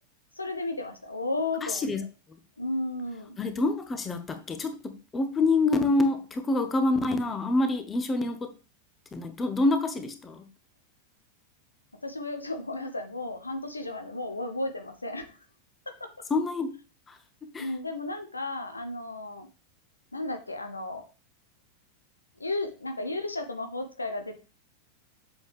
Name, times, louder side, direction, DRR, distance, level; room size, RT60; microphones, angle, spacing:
voice 1, 0.3-1.8 2.6-3.4 12.0-15.4 17.6-19.5 20.1-21.0 22.4-24.3, left 2 dB, 80° left, 6 dB, 1.1 m, -33 dB
voice 2, 1.6-2.0 3.4-8.5 9.1-10.4 16.3-16.7 17.1-17.2 17.5-17.7, left 2 dB, 15° left, 8 dB, 1.3 m, -26 dB
8.1 x 7.0 x 3.5 m, 0.33 s
figure-of-eight pair, 90°, 0 cm